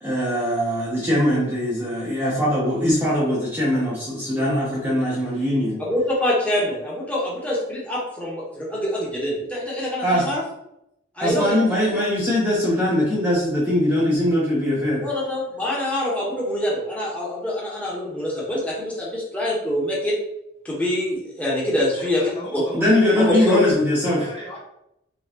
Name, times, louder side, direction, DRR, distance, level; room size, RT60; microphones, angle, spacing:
voice 1, 0.0-5.8 10.0-10.3 11.2-15.0 22.7-24.2, left 1 dB, 10° right, -7 dB, 0.8 m, -21 dB
voice 2, 5.9-10.4 11.2-11.5 15.0-20.2 20.6-22.2 22.5-22.6 23.1-23.8, left 1 dB, 5° left, -6 dB, 1.2 m, -25 dB
voice 3, 21.9-23.7 24.0-24.6, equal, 25° left, -5 dB, 1.4 m, -37 dB
4.1 x 3.8 x 2.9 m, 0.83 s
head